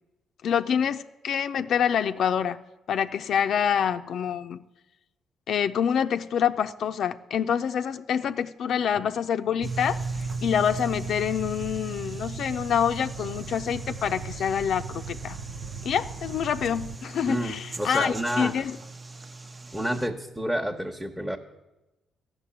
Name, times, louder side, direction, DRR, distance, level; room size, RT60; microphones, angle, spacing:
voice 1, 0.4-2.6 2.9-4.6 5.5-10.0 10.4-15.4 15.8-18.8, left 8 dB, 65° left, 8 dB, 0.5 m, -26 dB
sound 1, 9.6-20.1, right 3 dB, 25° right, 0.7 m, -38 dB
sound 2, 9.6-17.0, right 5 dB, 75° right, 0.6 m, -40 dB
voice 2, 17.2-18.6 19.7-21.4, equal, 5° right, 1 dB, 1.0 m, -29 dB
13.5 x 6.6 x 9.9 m, 1.0 s
cardioid pair, 90°, 0 cm